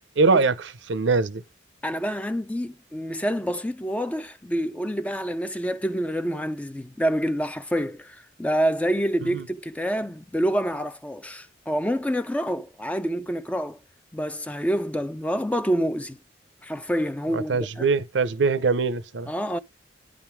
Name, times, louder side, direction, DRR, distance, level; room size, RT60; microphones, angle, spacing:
voice 1, 0.2-0.5 0.9-1.4 9.2-9.4 17.3-19.3, right 4 dB, 85° right, 0.6 m, -22 dB
voice 2, 1.8-13.8 14.1-16.2 16.6-17.9 19.3-19.6, equal, 5° left, 0.4 m, -27 dB
9.7 x 3.7 x 4.5 m
head